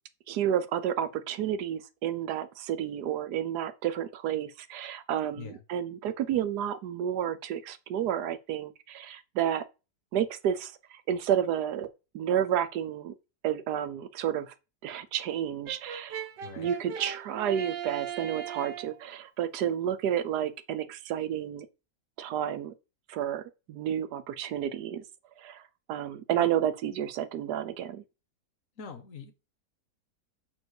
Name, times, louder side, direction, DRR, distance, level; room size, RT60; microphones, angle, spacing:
voice 1, 0.3-9.6 10.1-11.9 12.1-13.1 13.4-14.5 14.8-16.2 16.6-21.7 22.2-22.7 23.1-25.0 25.4-25.6 25.9-28.0, right 10 dB, 75° right, 1.3 m, -31 dB
Brass instrument, 15.7-19.0, right 9 dB, 90° right, 1.5 m, -38 dB
voice 2, 28.8-29.3, left 6 dB, 55° left, 1.3 m, -43 dB
5.5 x 4.6 x 6.4 m
omnidirectional pair, 1.8 m